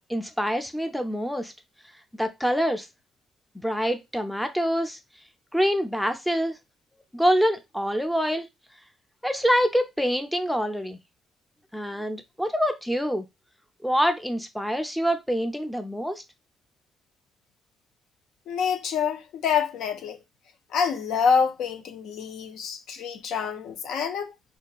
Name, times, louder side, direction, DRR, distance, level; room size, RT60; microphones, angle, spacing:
voice 1, 0.1-1.5 2.2-2.9 3.5-5.0 5.5-6.6 7.1-8.5 9.2-11.0 11.7-13.3 13.8-16.2, equal, ahead, 0.4 m, -25 dB
voice 2, 18.5-20.2 20.7-24.3, left 6 dB, 80° left, 0.4 m, -26 dB
2.6 x 2.4 x 2.3 m
cardioid pair, 90°, 0 cm